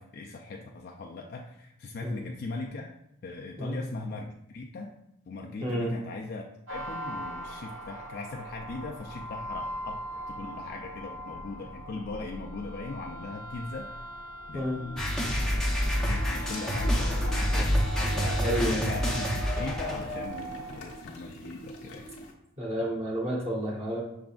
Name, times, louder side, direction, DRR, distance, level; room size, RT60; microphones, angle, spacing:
voice 1, 0.0-2.9 3.2-4.9 5.3-14.1 14.5-15.4 16.0-17.8 18.1-22.1, left 3 dB, 45° left, 0 dB, 0.3 m, -39 dB
voice 2, 5.6-5.9 14.5-14.8 18.4-18.9 22.6-24.0, equal, 30° right, -3 dB, 1.1 m, -30 dB
sound 1, 6.7-20.9, right 1 dB, 65° right, 1.2 m, -40 dB
sound 2, 15.0-20.3, equal, 5° left, 0.6 m, -27 dB
sound 3, 16.0-22.3, equal, 85° left, 0.9 m, -45 dB
6.0 x 3.6 x 2.4 m, 0.81 s
head